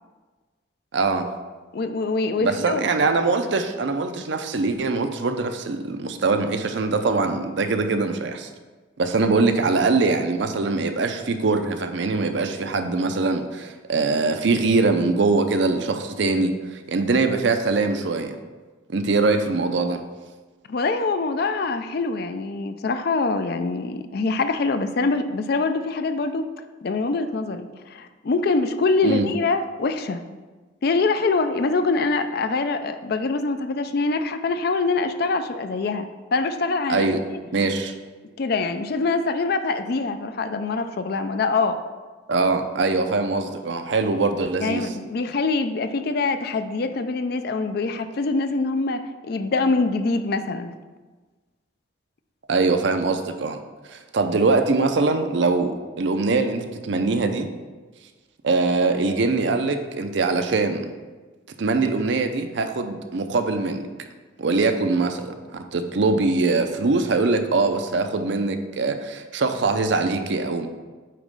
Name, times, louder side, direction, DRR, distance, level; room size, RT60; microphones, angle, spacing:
voice 1, 0.9-1.3 2.4-8.5 9.0-18.4 18.9-20.0 29.0-29.3 36.9-37.2 37.5-37.9 42.3-44.9 52.5-53.6 53.9-57.5 58.4-60.9 61.6-63.8 64.4-70.7, right 3 dB, 65° right, 7 dB, 0.5 m, -22 dB
voice 2, 1.7-2.8 20.7-26.5 26.8-30.2 30.8-37.1 38.4-41.8 44.6-50.7, left 3 dB, 50° left, 9 dB, 0.4 m, -24 dB
8.5 x 3.0 x 5.3 m, 1.3 s
head